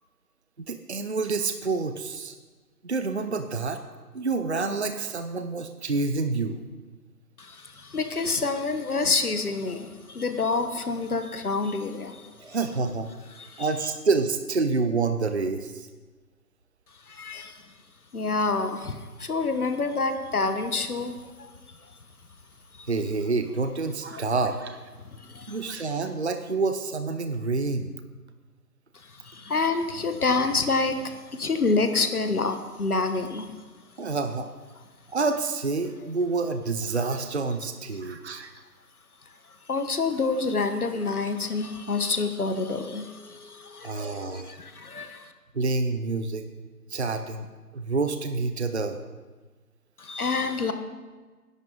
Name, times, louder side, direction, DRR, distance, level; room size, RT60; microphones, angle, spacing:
voice 1, 0.6-2.4 2.8-3.8 4.1-6.6 12.4-13.1 13.6-15.9 22.9-24.8 25.5-27.9 34.0-34.5 35.1-38.5 43.8-44.6 45.5-46.5 46.9-47.5 47.7-49.0, right 3 dB, 45° right, 8 dB, 0.7 m, -28 dB
voice 2, 7.4-12.3 13.3-13.7 17.1-17.6 18.1-21.5 22.8-22.9 24.1-24.2 25.0-25.6 28.9-33.6 39.7-45.3 50.0-50.7, left 3 dB, 65° left, 8 dB, 1.4 m, -28 dB
19.0 x 11.0 x 3.9 m, 1.3 s
figure-of-eight pair, 170°, 48 cm